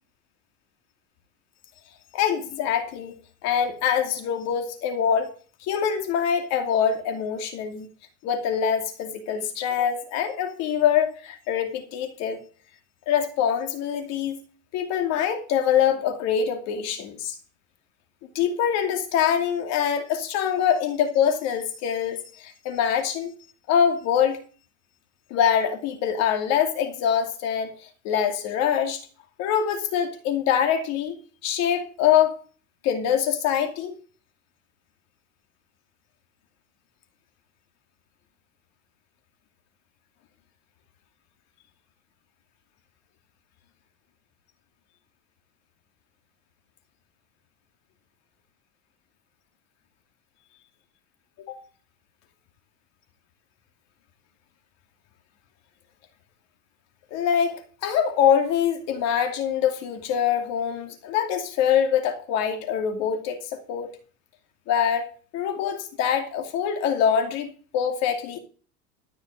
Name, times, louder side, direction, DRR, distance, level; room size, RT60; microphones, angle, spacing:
voice 1, 2.1-5.3 5.6-7.9 8.2-12.4 13.1-14.4 14.7-17.4 18.3-23.3 23.7-24.4 25.3-27.7 28.0-29.0 29.4-31.2 31.4-32.4 32.8-34.0 51.5-51.6 57.1-64.0 64.7-65.1 65.3-68.4, left 8 dB, 50° left, 2.6 m, -24 dB
13.5 x 6.4 x 8.3 m
cardioid pair, 165°, 34 cm